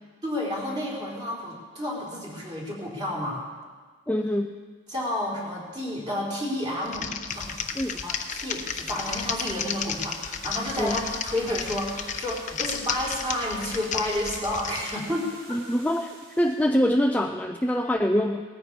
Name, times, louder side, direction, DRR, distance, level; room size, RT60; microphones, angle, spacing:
voice 1, 0.2-3.5 4.9-7.6 7.9-15.6, left 1 dB, 20° right, -5 dB, 3.9 m, -31 dB
voice 2, 4.1-4.6 7.8-8.0 10.8-11.0 15.5-18.4, equal, 5° left, 4 dB, 0.4 m, -24 dB
Typing, 6.8-15.0, left 7 dB, 35° left, 0.8 m, -33 dB
sound 1, 7.3-16.7, right 1 dB, 90° right, 5.3 m, -48 dB
18.5 x 14.0 x 4.8 m, 1.5 s
head